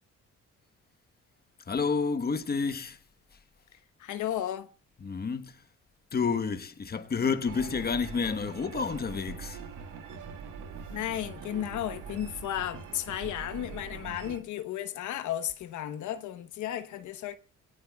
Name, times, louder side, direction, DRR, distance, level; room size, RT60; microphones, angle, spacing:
voice 1, 1.7-3.0 5.0-5.6 6.1-9.6, left 5 dB, 30° left, 1.2 m, -30 dB
voice 2, 4.0-4.7 10.9-17.4, left 11 dB, 75° left, 1.1 m, -34 dB
sound 1, 7.5-14.4, right 6 dB, 85° right, 1.9 m, -43 dB
22.5 x 17.5 x 2.3 m
cardioid pair, 90°, 30 cm